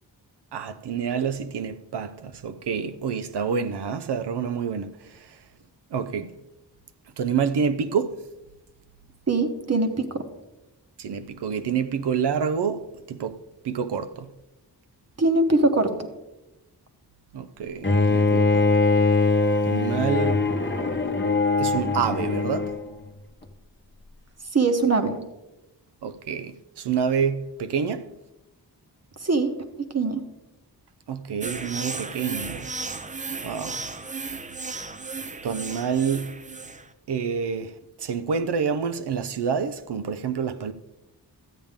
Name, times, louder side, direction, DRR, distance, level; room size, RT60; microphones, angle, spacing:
voice 1, 0.5-5.4 5.9-6.4 7.2-8.3 11.0-13.4 13.6-14.3 17.3-18.7 19.6-20.5 21.6-22.7 26.0-28.1 31.1-32.7 33.4-33.9 35.4-36.4 37.1-40.7, right 6 dB, 75° right, 0.6 m, -28 dB
voice 2, 9.3-10.2 15.2-15.9 24.5-25.2 29.2-29.5 29.9-30.2, right 3 dB, 40° right, 1.0 m, -22 dB
Bowed string instrument, 17.8-22.9, left 3 dB, 25° left, 0.8 m, -22 dB
sound 1, 31.4-36.9, right 4 dB, 20° right, 0.5 m, -35 dB
13.5 x 8.6 x 3.6 m
wide cardioid pair, 120°, 41 cm